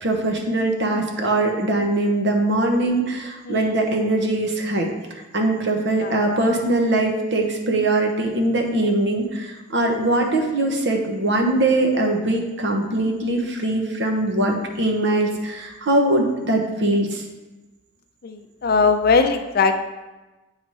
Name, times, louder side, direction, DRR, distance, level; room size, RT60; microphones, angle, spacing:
voice 1, 0.0-4.9 5.1-17.2, right 2 dB, 65° right, 1 dB, 1.0 m, -21 dB
voice 2, 18.6-19.7, left 4 dB, 55° left, 7 dB, 0.5 m, -19 dB
8.0 x 3.2 x 5.4 m, 1.1 s
head